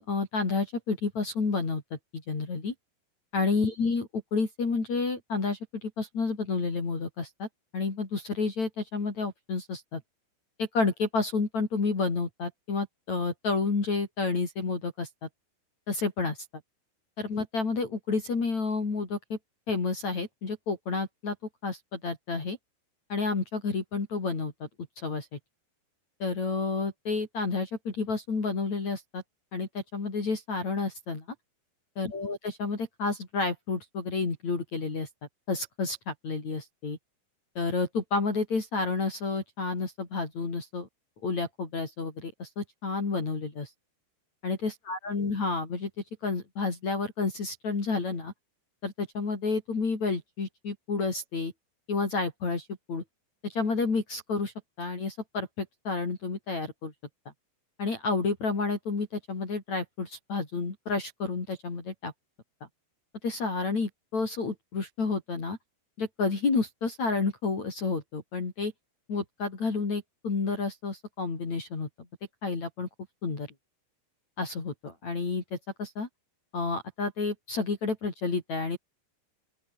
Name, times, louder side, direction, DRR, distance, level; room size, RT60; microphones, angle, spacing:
voice 1, 0.0-1.8 2.1-2.7 3.3-7.5 7.7-10.0 10.6-15.1 15.9-16.4 17.2-19.4 19.7-21.4 21.6-22.6 23.1-24.7 25.0-25.4 26.2-29.2 29.5-31.2 32.0-35.1 35.5-37.0 37.6-40.9 41.2-43.7 44.4-45.9 46.2-48.3 48.8-51.5 51.9-53.0 53.4-56.9 57.8-62.1 63.2-65.6 66.0-68.7 69.1-71.9 72.4-72.9 73.2-73.5 74.4-75.4 75.8-76.1 76.5-78.8, left 4 dB, 35° left, 5.6 m, -30 dB
open air
omnidirectional pair, 5.5 m